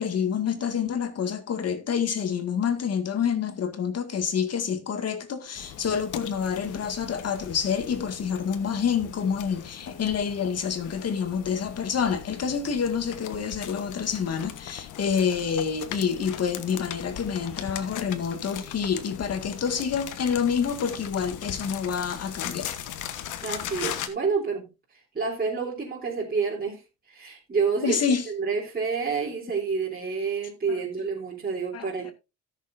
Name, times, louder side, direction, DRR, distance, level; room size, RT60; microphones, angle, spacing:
voice 1, 0.0-22.7 27.8-28.2 30.7-30.8 31.7-32.1, left 7 dB, 55° left, 2.0 m, -28 dB
sound 1, 5.6-24.1, left 10 dB, 80° left, 1.3 m, -39 dB
voice 2, 23.4-32.1, right 5 dB, 30° right, 3.5 m, -29 dB
17.0 x 6.7 x 2.6 m
cardioid pair, 90°, 30 cm